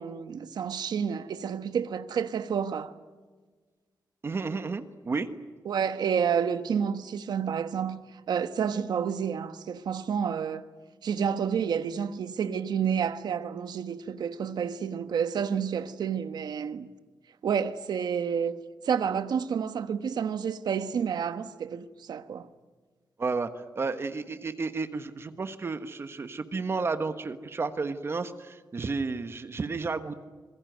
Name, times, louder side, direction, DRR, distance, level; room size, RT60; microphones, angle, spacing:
voice 1, 0.0-2.9 5.6-10.7 11.0-16.9 17.4-18.6 18.8-22.5, right 7 dB, 75° right, 1.3 m, -29 dB
voice 2, 4.2-5.3 23.2-23.5 23.7-30.2, right 4 dB, 35° right, 1.3 m, -32 dB
26.5 x 21.5 x 9.3 m
wide cardioid pair, 165°, 7 cm